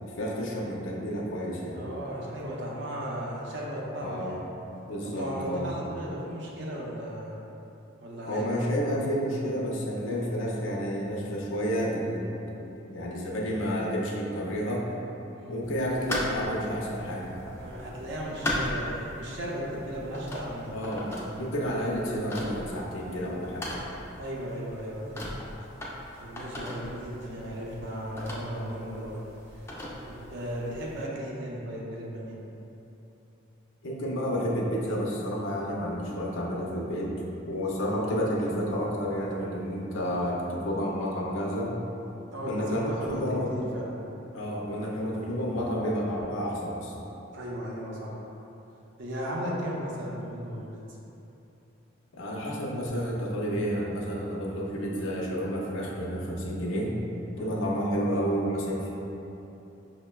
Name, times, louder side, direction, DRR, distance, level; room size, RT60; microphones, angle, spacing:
voice 1, 0.0-1.8 4.0-4.4 4.9-5.7 8.3-12.2 12.6-14.9 15.5-17.5 20.7-23.7 33.8-37.2 37.4-41.8 42.4-43.6 44.3-46.9 52.2-57.0 57.4-58.9, equal, 70° left, -2 dB, 0.5 m, -30 dB
voice 2, 1.7-4.4 5.0-7.3 8.0-8.6 15.3-15.5 17.6-20.7 24.2-25.3 26.1-29.2 29.5-29.6 30.1-32.4 42.3-43.2 43.5-43.9 47.3-48.2 49.0-50.8 57.4-57.6, equal, 65° right, -3 dB, 0.5 m, -36 dB
sound 1, 15.6-31.0, left 1 dB, 15° left, 0.3 m, -38 dB
5.2 x 2.1 x 2.2 m, 3.0 s
head